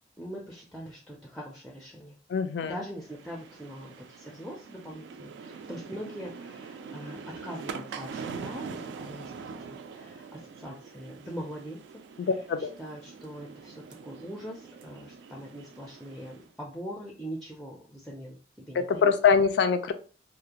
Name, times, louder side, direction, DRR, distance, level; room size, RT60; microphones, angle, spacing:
voice 1, 0.2-2.1 2.6-9.3 9.6-11.8 12.6-19.1, equal, 5° left, -2 dB, 0.4 m, -42 dB
voice 2, 2.3-2.7 12.2-12.7 18.8-19.9, left 6 dB, 75° left, 10 dB, 0.3 m, -24 dB
sound 1, 3.0-16.5, right 5 dB, 85° right, 0.3 m, -43 dB
2.4 x 2.1 x 2.8 m, 0.37 s
head